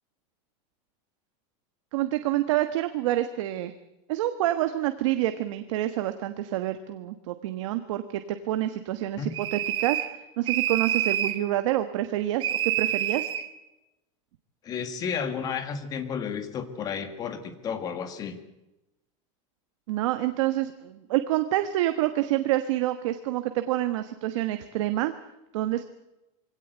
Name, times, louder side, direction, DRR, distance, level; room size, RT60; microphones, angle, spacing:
voice 1, 1.9-3.7 4.1-13.3 19.9-25.1 25.5-25.8, right 14 dB, 70° right, 9 dB, 1.3 m, -27 dB
sound 1, 9.3-10.2 10.5-11.4 12.4-13.5, right 11 dB, 30° right, 1.2 m, -27 dB
voice 2, 14.6-18.4, left 6 dB, 20° left, 9 dB, 1.7 m, -32 dB
23.5 x 17.5 x 7.9 m, 0.96 s
supercardioid pair, 180°, 17 cm